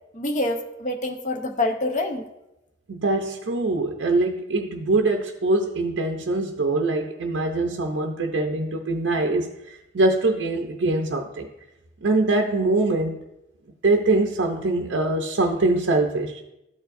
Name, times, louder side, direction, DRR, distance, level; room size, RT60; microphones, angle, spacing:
voice 1, 0.1-2.2, left 2 dB, 40° left, 5 dB, 0.7 m, -26 dB
voice 2, 2.9-9.5 9.9-11.5 12.0-13.2 13.8-16.5, right 2 dB, 60° right, 3 dB, 0.5 m, -23 dB
13.0 x 4.6 x 2.6 m, 0.91 s
head